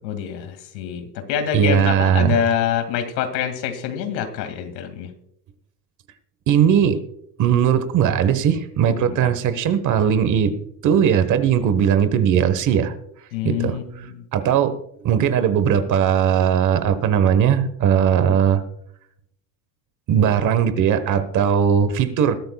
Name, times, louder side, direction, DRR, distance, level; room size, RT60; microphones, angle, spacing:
voice 1, 0.0-5.1 8.9-9.3 13.3-14.3, left 9 dB, 85° left, 8 dB, 2.4 m, -26 dB
voice 2, 1.5-2.4 6.5-7.0 7.4-10.6 10.8-12.9 13.4-14.7 15.0-18.6 20.1-22.4, right 8 dB, 35° right, 12 dB, 1.3 m, -19 dB
21.0 x 12.5 x 2.3 m, 0.73 s
supercardioid pair, 135°, 50 cm